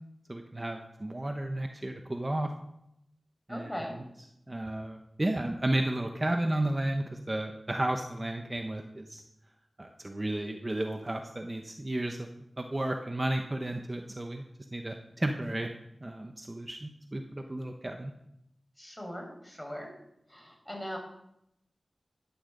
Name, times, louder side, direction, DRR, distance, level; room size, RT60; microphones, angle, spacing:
voice 1, 0.3-2.5 3.5-3.7 4.5-9.2 9.8-12.3 12.6-14.4 14.7-15.7 16.0-18.1, right 1 dB, 30° right, 4 dB, 1.0 m, -33 dB
voice 2, 3.5-3.9 18.8-19.9 20.3-21.0, equal, 15° left, 1 dB, 5.2 m, -39 dB
14.0 x 11.0 x 3.9 m, 0.80 s
cardioid pair, 40°, 0 cm